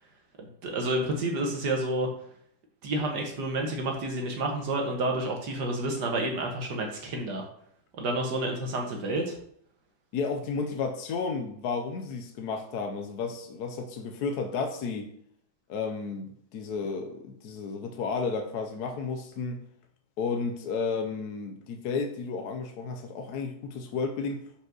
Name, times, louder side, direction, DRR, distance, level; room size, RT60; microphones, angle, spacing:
voice 1, 0.4-2.1 2.8-7.5 8.0-9.4, right 1 dB, 60° right, 2 dB, 1.6 m, -29 dB
voice 2, 10.1-15.1 15.7-19.6 20.2-24.4, left 4 dB, 65° left, 5 dB, 1.1 m, -32 dB
5.3 x 5.2 x 6.0 m, 0.66 s
omnidirectional pair, 2.2 m